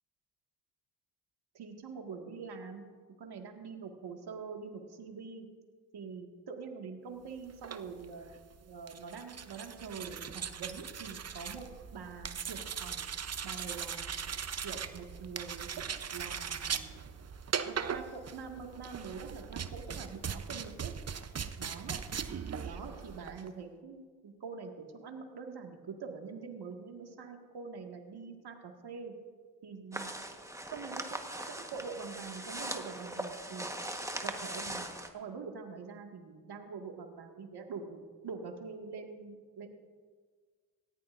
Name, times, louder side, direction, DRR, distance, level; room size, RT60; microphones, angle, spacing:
voice 1, 1.5-2.9 3.2-5.5 5.9-8.3 8.6-11.7 11.9-13.1 13.4-14.1 14.6-15.8 16.1-17.0 17.6-21.0 21.6-22.0 22.6-29.1 29.6-30.2 30.7-31.2 31.5-33.7 34.2-39.7, right 5 dB, 60° right, 2 dB, 2.0 m, -45 dB
sound 1, 7.5-23.5, right 7 dB, 35° right, 0.8 m, -40 dB
sound 2, 29.9-35.1, right 1 dB, 5° right, 1.4 m, -40 dB
18.0 x 14.0 x 2.6 m, 1.5 s
hypercardioid pair, 45°, 44 cm